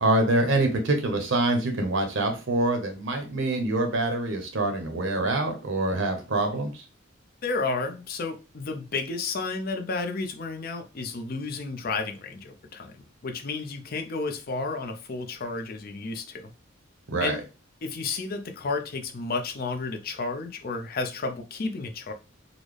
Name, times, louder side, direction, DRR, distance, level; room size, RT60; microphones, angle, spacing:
voice 1, 0.0-6.8 17.1-17.4, right 2 dB, 65° right, 5 dB, 0.7 m, -25 dB
voice 2, 7.4-12.9 13.2-16.5 17.2-17.4 17.8-22.1, left 3 dB, 45° left, 5 dB, 0.5 m, -32 dB
3.8 x 2.0 x 3.2 m, 0.31 s
head